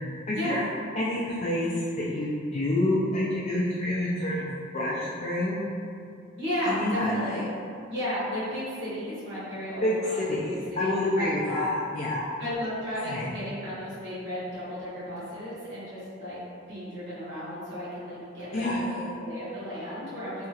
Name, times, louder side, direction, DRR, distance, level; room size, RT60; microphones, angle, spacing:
voice 1, 0.3-0.6 1.0-4.4 4.7-5.6 6.7-7.4 9.8-12.3 13.0-13.3 18.5-19.1, left 1 dB, 35° left, -7 dB, 0.3 m, -28 dB
voice 2, 6.4-7.5 7.9-11.7 12.4-16.4 16.7-20.5, equal, 65° right, -10 dB, 1.1 m, -34 dB
2.8 x 2.4 x 2.7 m, 2.4 s
head